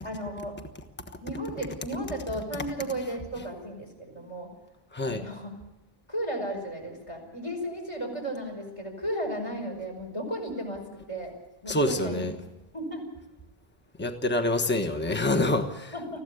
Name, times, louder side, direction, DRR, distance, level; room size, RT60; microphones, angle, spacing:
voice 1, 0.0-0.6 1.2-4.5 5.0-5.5 6.1-10.8 11.1-11.3 11.6-12.3 12.7-13.0 15.9-16.2, right 1 dB, 30° left, 1 dB, 5.4 m, -34 dB
voice 2, 11.7-12.3 14.0-15.9, left 1 dB, 10° left, 6 dB, 1.3 m, -26 dB
20.5 x 15.5 x 8.5 m, 1.1 s
omnidirectional pair, 1.0 m